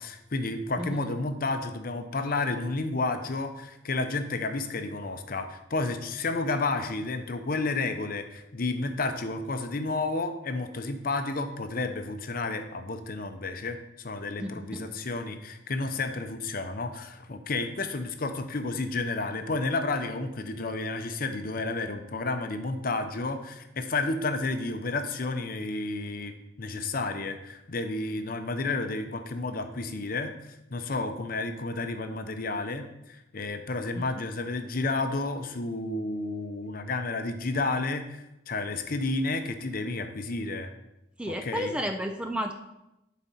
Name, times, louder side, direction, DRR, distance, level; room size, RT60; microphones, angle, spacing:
voice 1, 0.0-40.7 41.3-41.8, left 3 dB, 45° left, 7 dB, 0.7 m, -31 dB
voice 2, 14.4-14.8 41.2-42.5, equal, 5° right, 5 dB, 0.4 m, -32 dB
11.0 x 4.2 x 4.2 m, 0.89 s
head